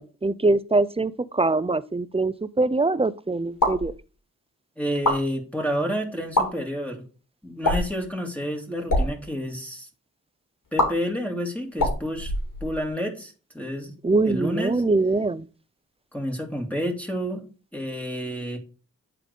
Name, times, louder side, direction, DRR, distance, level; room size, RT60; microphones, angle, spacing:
voice 1, 0.0-3.9 14.0-15.4, right 3 dB, 15° right, 0.5 m, -23 dB
sound 1, 3.5-3.9 4.9-5.2 6.2-6.5 7.6-8.0 8.8-9.1 10.8-10.9 11.7-12.9, left 1 dB, 60° left, 2.5 m, -24 dB
voice 2, 4.8-7.0 7.4-9.9 10.7-12.3 12.6-13.9 14.2-14.8 16.1-17.4 17.7-18.6, equal, 5° left, 2.4 m, -29 dB
9.0 x 3.9 x 4.9 m
cardioid pair, 50°, 34 cm